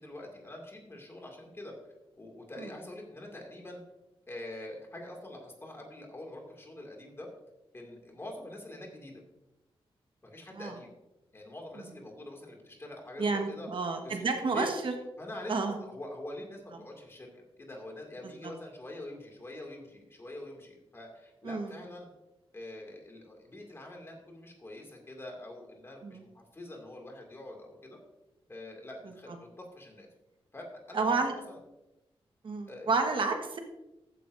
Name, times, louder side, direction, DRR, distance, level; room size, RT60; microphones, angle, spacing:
voice 1, 0.0-1.7 2.2-3.8 4.3-7.3 7.7-9.2 10.2-10.9 11.3-13.7 14.0-14.7 15.2-22.1 22.5-28.0 28.5-30.1 30.5-31.2 31.5-31.6 32.7-33.2, left 1 dB, 25° left, 1 dB, 2.3 m, -45 dB
voice 2, 13.2-14.9 15.5-15.8 21.4-21.7 26.0-26.2 30.9-31.3 32.4-33.6, right 4 dB, 55° right, 4 dB, 1.2 m, -30 dB
14.5 x 9.5 x 2.6 m, 0.97 s
wide cardioid pair, 140°, 10 cm